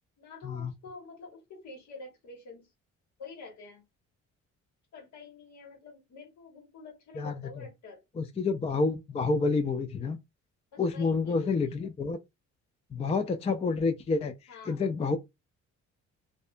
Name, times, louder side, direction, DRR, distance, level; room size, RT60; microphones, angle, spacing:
voice 1, 0.2-2.7 3.2-3.8 4.9-8.0 10.7-11.8 14.5-14.9, left 3 dB, 70° left, 1.3 m, -48 dB
voice 2, 8.2-10.2 10.8-12.2 12.9-14.3 14.7-15.2, left 4 dB, 20° left, 0.3 m, -28 dB
2.6 x 2.2 x 2.4 m
cardioid pair, 90°, 30 cm